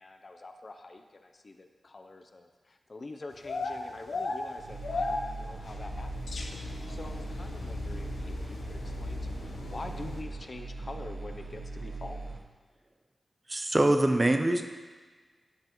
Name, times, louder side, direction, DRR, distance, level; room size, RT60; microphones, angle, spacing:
voice 1, 0.0-6.1 6.4-12.2, left 2 dB, 45° left, 6 dB, 0.6 m, -46 dB
sound 1, 3.3-10.2, left 3 dB, 75° left, 0.8 m, -37 dB
sound 2, 4.6-12.4, right 3 dB, 90° right, 0.8 m, -40 dB
voice 2, 13.5-14.6, right 1 dB, 25° right, 6 dB, 0.6 m, -24 dB
13.0 x 5.6 x 3.0 m, 1.4 s
wide cardioid pair, 95°, 0 cm